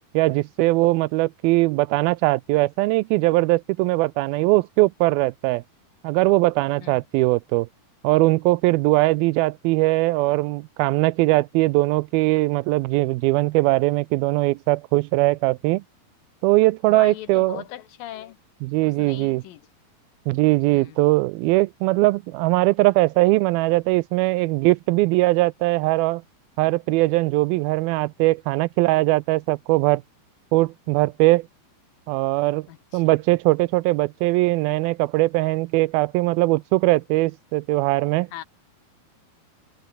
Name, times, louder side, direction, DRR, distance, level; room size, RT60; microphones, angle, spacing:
voice 1, 0.1-5.6 6.0-7.7 8.0-15.8 16.4-17.6 18.6-19.4 20.3-26.2 26.6-30.0 30.5-31.5 32.1-32.7 32.9-38.3, right 21 dB, 80° right, 2.3 m, -20 dB
voice 2, 16.9-18.4 18.8-19.7 20.7-21.1 32.7-33.2 38.3-38.4, left 13 dB, 75° left, 2.7 m, -39 dB
omnidirectional pair, 4.4 m